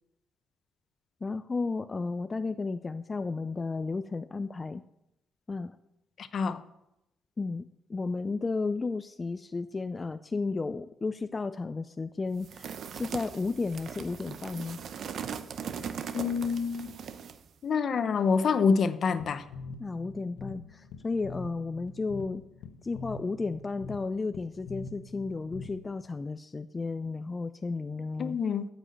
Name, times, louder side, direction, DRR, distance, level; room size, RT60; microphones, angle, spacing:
voice 1, 1.2-4.8 5.5-5.8 7.4-14.8 19.8-22.4 22.8-28.4, left 3 dB, 25° left, 11 dB, 0.4 m, -33 dB
voice 2, 6.2-6.6 16.1-16.9 17.6-19.4 28.2-28.7, left 5 dB, 55° left, 12 dB, 0.8 m, -27 dB
sound 1, 12.4-17.5, right 7 dB, 65° right, 0.7 m, -39 dB
sound 2, 19.2-26.1, left 4 dB, 90° left, 1.0 m, -44 dB
9.3 x 6.2 x 7.7 m, 0.84 s
cardioid pair, 90°, 0 cm